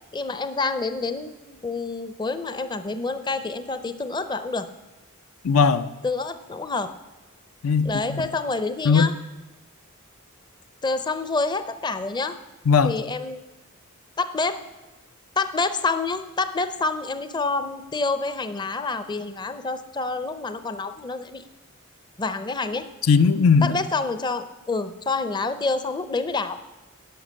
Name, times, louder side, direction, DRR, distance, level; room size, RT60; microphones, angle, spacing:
voice 1, 0.1-4.7 6.0-6.9 7.8-9.1 10.8-12.4 12.8-13.4 14.2-14.6 15.4-21.4 22.2-22.9 23.6-26.6, left 3 dB, 20° left, 11 dB, 0.5 m, -27 dB
voice 2, 5.4-5.9 7.6-8.2 8.8-9.1 12.7-12.9 23.0-23.8, left 5 dB, 80° left, 12 dB, 0.5 m, -18 dB
11.0 x 5.8 x 7.5 m, 1.1 s
head